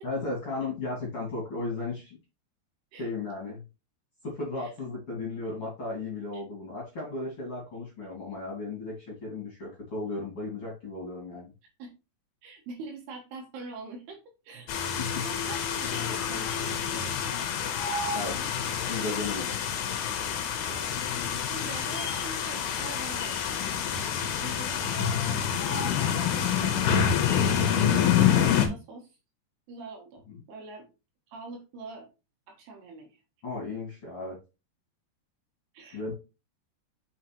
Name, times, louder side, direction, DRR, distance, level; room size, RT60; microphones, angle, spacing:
voice 1, 0.0-2.2 3.0-3.6 4.2-11.5 15.0-15.3 18.1-18.4 18.9-19.5 30.3-30.4 33.4-34.4 35.9-36.1, left 3 dB, 40° left, -3 dB, 2.7 m, -35 dB
voice 2, 4.2-4.7 6.3-6.4 11.8-11.9 12.4-14.2 14.4-14.7 15.0-17.5 17.8-18.2 20.6-20.9 21.5-23.4 24.4-27.0 27.6-29.1 29.7-30.2 30.5-30.9 31.3-32.1 32.5-33.1 35.7-36.0, right 3 dB, 65° right, 1 dB, 3.4 m, -44 dB
sound 1, 14.7-28.7, left 8 dB, 70° left, 2.5 m, -27 dB
6.4 x 6.3 x 3.0 m, 0.28 s
omnidirectional pair, 5.3 m